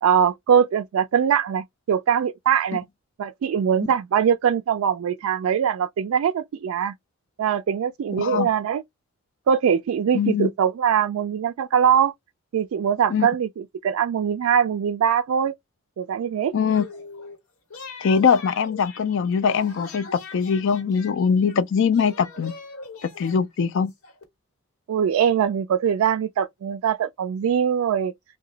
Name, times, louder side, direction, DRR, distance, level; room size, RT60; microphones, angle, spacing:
voice 1, 0.0-2.8 3.2-6.9 7.4-8.8 9.5-12.1 12.5-15.5 16.0-16.5 24.9-28.1, right 8 dB, 80° right, 0.3 m, -22 dB
voice 2, 8.2-8.5 10.1-10.5 13.1-13.3 16.5-16.8 18.0-22.5 23.2-23.9, left 6 dB, 60° left, 0.4 m, -22 dB
sound 1, 16.6-17.4 17.7-21.6 21.9-24.2, left 3 dB, 90° left, 1.1 m, -42 dB
2.8 x 2.2 x 3.8 m
head